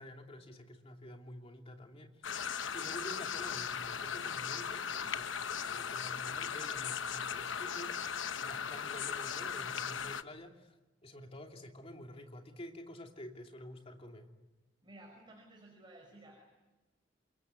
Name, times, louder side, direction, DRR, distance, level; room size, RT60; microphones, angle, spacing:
voice 1, 0.0-2.5 2.7-10.7 11.0-14.3, left 1 dB, 30° left, 3 dB, 2.8 m, -49 dB
sound 1, 2.2-10.2, left 7 dB, 75° left, 1.0 m, -38 dB
voice 2, 14.8-16.4, right 1 dB, 25° right, 1 dB, 5.5 m, -55 dB
28.0 x 22.5 x 9.5 m, 1.1 s
head